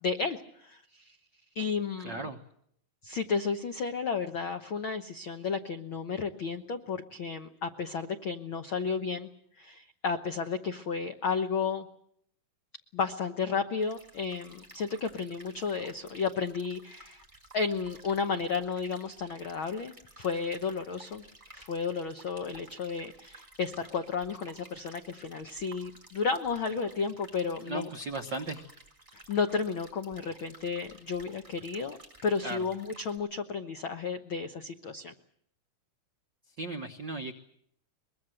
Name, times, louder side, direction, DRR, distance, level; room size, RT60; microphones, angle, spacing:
voice 1, 0.0-1.2 1.5-2.2 3.0-9.3 9.6-11.9 12.9-17.2 17.5-21.2 21.5-27.9 29.3-35.1, left 5 dB, 80° left, 6 dB, 1.1 m, -33 dB
voice 2, 2.0-2.4 27.6-28.6 32.4-32.7 36.6-37.3, right 2 dB, 80° right, 5 dB, 1.0 m, -36 dB
sound 1, 13.8-33.2, right 1 dB, 10° right, 3.4 m, -54 dB
23.5 x 22.0 x 7.8 m, 0.69 s
omnidirectional pair, 3.9 m